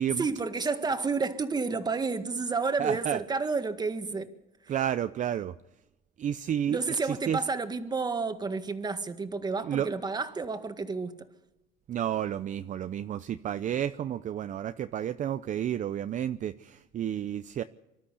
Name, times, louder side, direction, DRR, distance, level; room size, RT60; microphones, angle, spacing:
voice 1, 0.2-4.3 4.6-4.7 6.7-11.2, right 4 dB, 25° right, 1.8 m, -30 dB
voice 2, 2.8-3.2 4.7-5.5 6.2-7.4 9.6-9.9 11.9-17.6, right 10 dB, 50° right, 0.6 m, -31 dB
24.5 x 13.0 x 8.3 m
cardioid pair, 110°, 17 cm